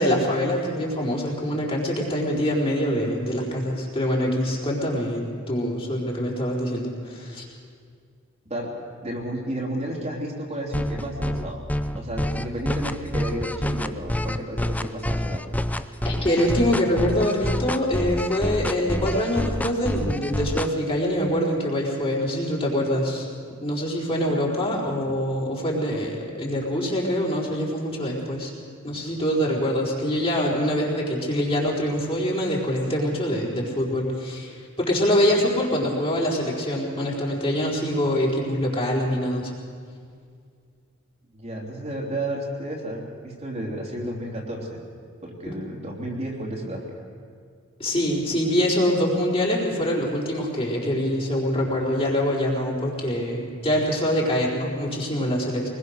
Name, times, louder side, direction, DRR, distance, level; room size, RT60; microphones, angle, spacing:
voice 1, 0.0-7.4 16.0-23.2 23.6-28.5 28.8-39.5 45.4-45.5 47.8-55.7, equal, 25° left, -3 dB, 4.4 m, -24 dB
voice 2, 9.0-11.6 11.9-15.6 41.3-44.8 45.2-46.8, right 1 dB, 35° right, -2 dB, 3.3 m, -32 dB
sound 1, 10.7-20.7, left 1 dB, 5° left, 0.6 m, -27 dB
24.0 x 21.0 x 6.6 m, 2.1 s
head